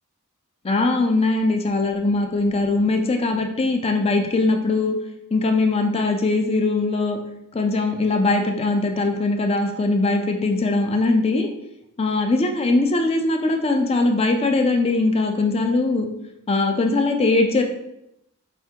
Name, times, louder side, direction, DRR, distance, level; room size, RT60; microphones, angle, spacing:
voice 1, 0.6-5.0 5.3-7.2 7.5-11.5 12.0-16.1 16.5-17.6, left 2 dB, 25° left, 4 dB, 0.4 m, -21 dB
4.3 x 3.5 x 2.8 m, 0.83 s
head